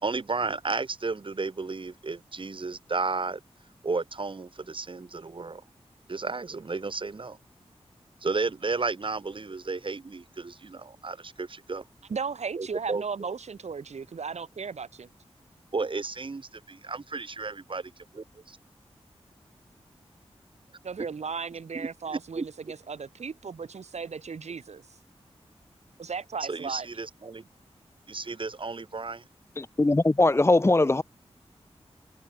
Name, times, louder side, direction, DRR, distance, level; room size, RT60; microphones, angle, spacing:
voice 1, 0.0-3.4 3.8-5.6 6.1-7.4 8.2-11.8 12.6-13.0 15.7-18.6 21.7-22.4 26.5-27.4 28.1-29.2, right 3 dB, 50° right, 4.5 m, -33 dB
voice 2, 12.1-15.1 20.8-24.8 26.0-26.9, right 5 dB, 85° right, 6.6 m, -36 dB
voice 3, 29.6-31.0, left 2 dB, 25° left, 0.9 m, -21 dB
wide cardioid pair, 90°, 11 cm